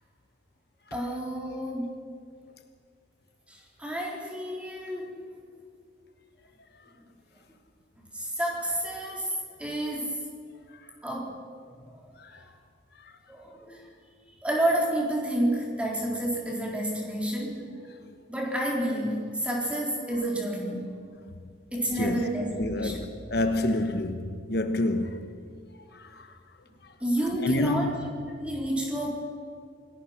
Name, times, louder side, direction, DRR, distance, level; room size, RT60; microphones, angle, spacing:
voice 1, 0.9-2.0 3.5-5.2 8.1-10.2 11.0-11.4 11.9-12.0 13.3-13.9 14.4-17.6 18.3-21.0 21.7-23.0 27.0-27.9 28.4-29.1, right 1 dB, 5° right, 3.8 m, -30 dB
voice 2, 22.6-25.4 25.9-26.3 27.4-28.1, left 1 dB, 60° left, 1.1 m, -28 dB
27.5 x 18.5 x 5.8 m
head